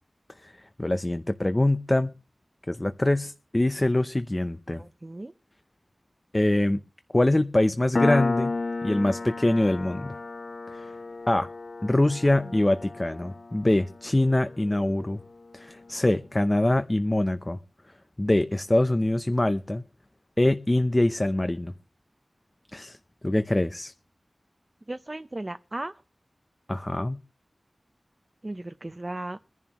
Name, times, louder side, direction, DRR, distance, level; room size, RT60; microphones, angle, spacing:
voice 1, 0.4-2.1 2.7-4.8 6.3-6.8 7.1-8.5 8.8-10.2 10.7-10.9 11.3-11.5 11.8-15.2 15.5-17.6 18.2-19.8 20.4-21.7 22.7-23.0 23.2-23.9 26.7-27.2, left 1 dB, 25° left, 0.6 m, -24 dB
voice 2, 4.8-5.3 12.4-12.5 24.9-26.0 28.4-29.4, right 2 dB, 30° right, 0.6 m, -36 dB
Piano, 8.0-15.1, left 3 dB, 55° left, 0.8 m, -32 dB
22.5 x 11.0 x 3.0 m
wide cardioid pair, 70°, 0 cm